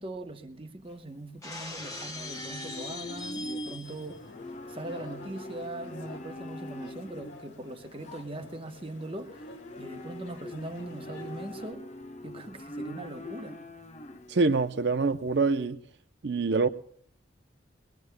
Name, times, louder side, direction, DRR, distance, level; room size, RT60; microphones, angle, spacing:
voice 1, 0.0-4.3 4.7-9.4 9.8-11.8 12.2-13.6, right 1 dB, 30° right, 1.0 m, -40 dB
Livestock farm animals working animals, 0.9-15.6, left 1 dB, 35° left, 0.8 m, -43 dB
Shatter, 1.4-4.2, left 3 dB, 15° left, 1.1 m, -41 dB
sound 1, 3.8-11.7, left 2 dB, 70° left, 2.1 m, -50 dB
voice 2, 14.3-15.8 16.2-16.7, right 3 dB, 60° right, 0.6 m, -25 dB
22.0 x 20.0 x 2.2 m
head